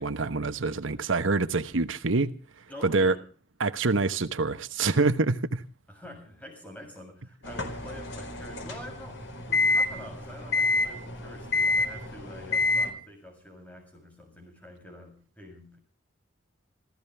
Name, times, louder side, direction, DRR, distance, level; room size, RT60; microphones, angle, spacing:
voice 1, 0.0-2.3 2.8-3.1 3.6-5.6, right 3 dB, 85° right, 1.1 m, -26 dB
voice 2, 2.7-3.2 5.9-15.8, left 1 dB, 10° left, 7.6 m, -46 dB
sound 1, 7.4-12.9, left 3 dB, 75° left, 4.4 m, -28 dB
27.0 x 15.5 x 3.5 m
head